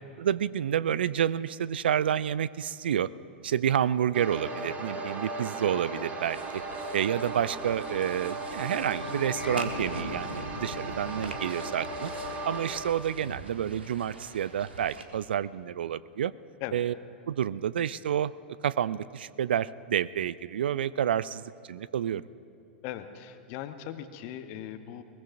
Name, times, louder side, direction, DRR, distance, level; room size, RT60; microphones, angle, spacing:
voice 1, 0.2-3.1 3.4-6.6 6.9-12.1 12.4-16.3 16.7-16.9 17.3-18.3 18.6-22.2, right 9 dB, 70° right, 19 dB, 0.3 m, -29 dB
sound 1, 4.1-12.8, right 2 dB, 25° right, 2.2 m, -37 dB
sound 2, 6.2-15.1, right 2 dB, 90° right, 1.4 m, -43 dB
sound 3, 8.7-13.2, left 5 dB, 85° left, 0.6 m, -43 dB
voice 2, 22.8-25.0, left 11 dB, 45° left, 9 dB, 1.0 m, -39 dB
21.5 x 20.5 x 2.6 m, 2.5 s
hypercardioid pair, 100°, 6 cm